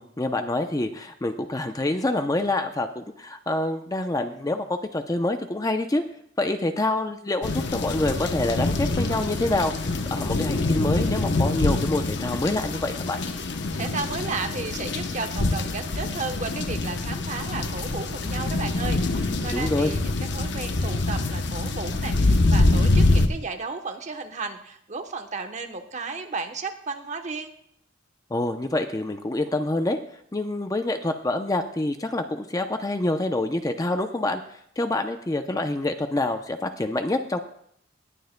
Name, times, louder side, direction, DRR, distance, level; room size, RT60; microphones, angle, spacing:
voice 1, 0.0-6.0 6.4-13.2 19.5-19.9 28.3-30.0 30.3-34.4 34.8-37.4, left 2 dB, 20° left, 7 dB, 0.6 m, -26 dB
sound 1, 7.4-23.3, left 2 dB, 65° left, 0.8 m, -25 dB
voice 2, 13.7-27.5, right 4 dB, 40° right, 6 dB, 0.9 m, -34 dB
19.5 x 9.2 x 2.2 m, 0.69 s
head